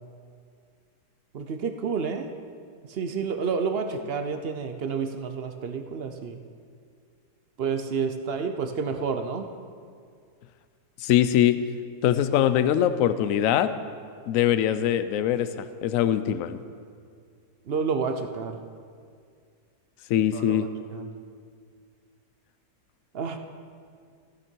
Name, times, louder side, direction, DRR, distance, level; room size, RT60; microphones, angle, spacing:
voice 1, 1.3-2.3 2.9-6.4 7.6-9.5 17.7-18.6 20.3-20.6 20.9-21.0 23.1-23.4, right 5 dB, 55° right, 6 dB, 0.7 m, -29 dB
voice 2, 11.0-11.6 12.0-13.7 14.3-16.6 20.1-20.7, left 11 dB, 70° left, 12 dB, 0.9 m, -22 dB
15.0 x 9.5 x 4.5 m, 2.2 s
omnidirectional pair, 1.7 m